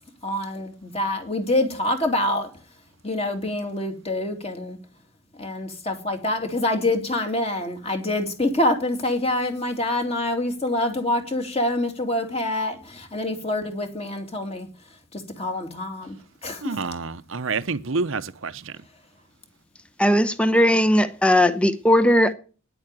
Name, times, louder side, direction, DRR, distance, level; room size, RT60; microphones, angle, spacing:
voice 1, 0.2-2.5 3.0-4.8 5.4-14.7 15.4-16.2 16.4-16.7, left 1 dB, 30° left, 2.5 m, -26 dB
voice 2, 16.6-18.7, right 4 dB, 70° right, 0.8 m, -28 dB
voice 3, 20.0-22.3, left 1 dB, 5° left, 0.8 m, -18 dB
10.5 x 8.7 x 9.7 m
head